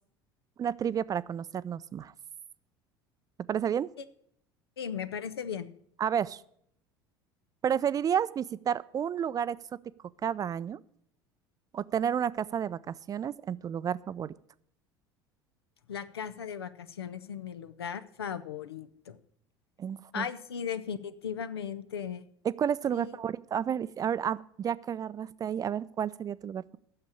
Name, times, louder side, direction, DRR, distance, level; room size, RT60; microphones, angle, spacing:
voice 1, 0.6-2.1 3.5-3.9 6.0-6.4 7.6-9.6 10.2-10.8 11.7-14.3 19.8-20.3 22.4-26.8, right 8 dB, 25° right, 18 dB, 0.4 m, -31 dB
voice 2, 4.8-5.7 15.9-19.2 20.1-22.2 22.9-23.1, left 7 dB, 75° left, 13 dB, 0.6 m, -37 dB
8.8 x 6.8 x 8.6 m, 0.67 s
figure-of-eight pair, 65°, 13 cm